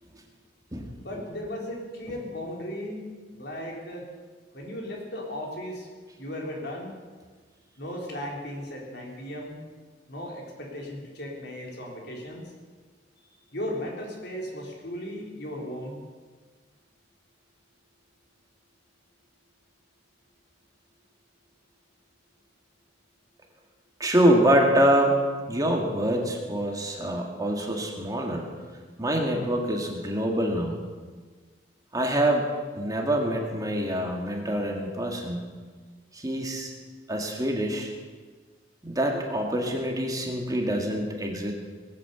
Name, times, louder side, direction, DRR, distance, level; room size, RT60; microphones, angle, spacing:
voice 1, 1.0-3.0 3.3-4.1 4.5-5.9 6.2-6.9 7.8-9.6 10.1-12.5 13.5-16.0, left 1 dB, 60° left, -1 dB, 3.8 m, -36 dB
voice 2, 24.0-25.2 25.5-28.5 29.0-30.8 31.9-32.5 32.8-35.5 36.1-36.7 37.1-37.9 38.8-41.5, right 1 dB, 20° right, 1 dB, 2.1 m, -25 dB
19.5 x 8.9 x 8.1 m, 1.4 s
head